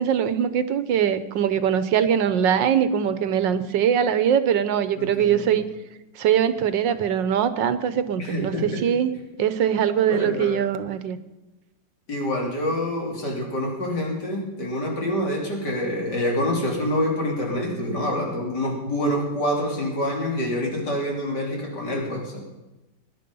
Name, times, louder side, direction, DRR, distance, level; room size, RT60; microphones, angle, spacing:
voice 1, 0.0-5.7 6.2-9.1 9.4-11.2, right 8 dB, 85° right, 12 dB, 1.6 m, -22 dB
voice 2, 5.0-5.5 8.2-8.9 10.1-10.6 12.1-22.4, left 1 dB, 65° left, -1 dB, 4.1 m, -26 dB
21.0 x 10.5 x 5.4 m, 1.1 s
omnidirectional pair, 2.0 m